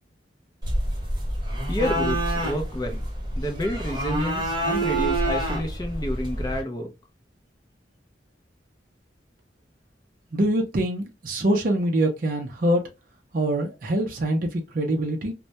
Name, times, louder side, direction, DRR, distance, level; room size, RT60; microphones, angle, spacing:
sound 1, 0.6-6.6, right 1 dB, 25° right, 0.8 m, -27 dB
voice 1, 1.7-3.0 3.4-6.9, equal, 20° left, 0.4 m, -29 dB
voice 2, 10.3-12.8 13.3-15.3, right 1 dB, 50° right, 0.5 m, -24 dB
2.2 x 2.1 x 2.7 m
head